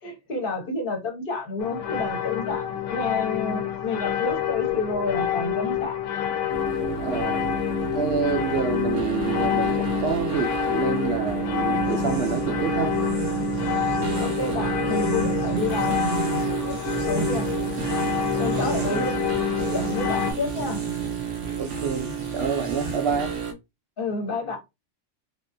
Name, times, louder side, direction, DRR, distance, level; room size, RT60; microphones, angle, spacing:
voice 1, 0.0-6.0 14.2-16.8 17.1-17.5 18.4-19.3 19.7-20.8 21.4-21.6 24.0-24.6, left 3 dB, 50° left, 1.0 m, -30 dB
sound 1, 1.6-20.3, left 10 dB, 85° left, 0.9 m, -28 dB
sound 2, 6.5-23.5, right 8 dB, 80° right, 1.1 m, -30 dB
voice 2, 7.0-7.4 7.9-13.0 18.6-19.1 21.6-23.3, right 6 dB, 60° right, 0.8 m, -28 dB
sound 3, 11.8-23.3, right 1 dB, 15° right, 0.7 m, -37 dB
3.5 x 2.4 x 2.6 m
omnidirectional pair, 1.3 m